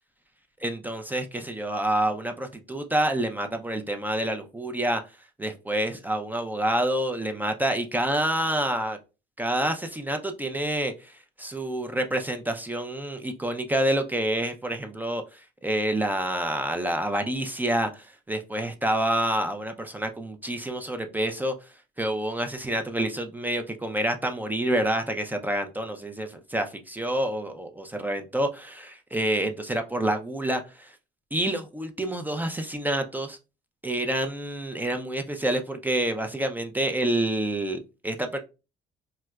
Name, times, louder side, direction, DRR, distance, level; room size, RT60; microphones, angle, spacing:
voice 1, 0.6-5.0 5.4-9.0 9.4-11.1 11.4-21.5 22.0-30.9 31.3-33.4 33.8-38.4, right 1 dB, 10° right, 5 dB, 0.4 m, -28 dB
4.6 x 2.1 x 2.2 m, 0.30 s
cardioid pair, 110°, 17 cm